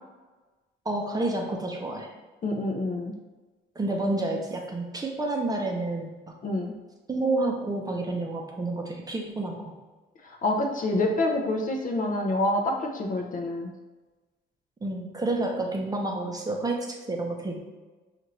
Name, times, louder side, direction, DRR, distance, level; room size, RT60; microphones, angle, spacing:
voice 1, 0.9-2.1 3.8-6.3 7.1-9.7 14.8-17.6, right 2 dB, 20° right, 1 dB, 0.6 m, -29 dB
voice 2, 2.4-3.1 6.4-6.7 10.2-13.7, left 2 dB, 40° left, 2 dB, 0.6 m, -27 dB
4.4 x 2.5 x 3.1 m, 1.2 s
cardioid pair, 90°, 20 cm